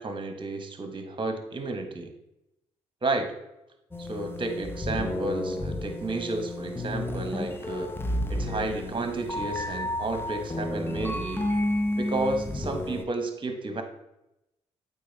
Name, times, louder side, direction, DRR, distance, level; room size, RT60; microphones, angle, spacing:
voice 1, 0.0-2.1 3.0-3.3 4.0-7.9 8.3-11.4 12.0-13.8, right 2 dB, 35° right, 6 dB, 1.3 m, -32 dB
sound 1, 3.9-13.0, left 1 dB, 15° left, 0.9 m, -31 dB
8.4 x 4.1 x 4.2 m, 0.89 s
hypercardioid pair, 45°, 14 cm